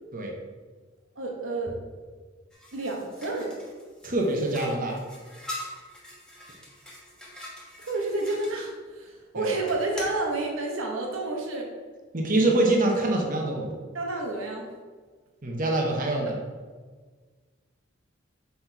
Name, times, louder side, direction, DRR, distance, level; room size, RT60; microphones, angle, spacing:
voice 1, 1.2-1.8 2.7-3.6 7.8-11.7 13.9-14.7, right 2 dB, 80° right, 0 dB, 0.9 m, -30 dB
sound 1, 2.5-8.5 9.6-10.2, left 1 dB, 5° left, 1.1 m, -43 dB
voice 2, 4.0-5.0 9.3-9.5 12.1-13.7 15.4-16.4, right 2 dB, 45° right, 0 dB, 0.9 m, -25 dB
5.8 x 4.2 x 4.5 m, 1.5 s
head